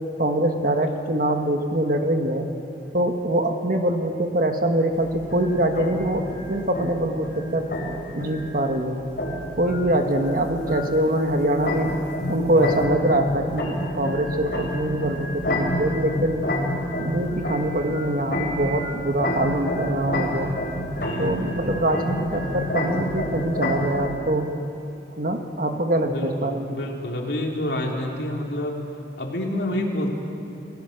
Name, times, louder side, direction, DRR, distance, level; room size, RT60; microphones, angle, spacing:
voice 1, 0.2-2.5 2.9-6.2 6.5-7.7 8.1-9.0 9.6-11.9 12.3-16.5 17.0-20.5 21.2-24.5 25.2-26.8, right 1 dB, 55° right, 4 dB, 1.7 m, -24 dB
sound 1, 4.9-24.1, left 1 dB, 55° left, 4.1 m, -29 dB
voice 2, 21.0-22.0 26.0-28.8 29.2-30.1, left 1 dB, 75° left, 0 dB, 3.2 m, -29 dB
28.0 x 17.0 x 6.6 m, 2.8 s
head